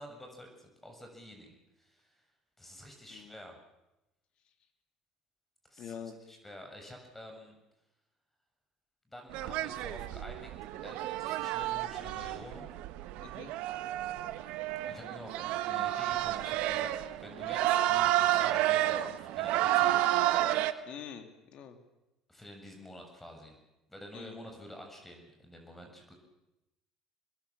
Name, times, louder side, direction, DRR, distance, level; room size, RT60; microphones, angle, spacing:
voice 1, 0.0-2.2 2.6-3.6 5.7-5.9 6.3-7.6 9.1-10.5 10.8-12.9 14.9-20.1 22.3-23.6 23.9-26.1, left 1 dB, 10° left, 3 dB, 6.9 m, -49 dB
voice 2, 5.8-6.2 13.2-13.6 20.9-21.8 24.1-24.4, left 8 dB, 55° left, 7 dB, 3.3 m, -45 dB
sound 1, 9.3-20.7, right 14 dB, 65° right, 1.2 m, -30 dB
26.0 x 21.0 x 7.3 m, 0.94 s
hypercardioid pair, 70°, 2 cm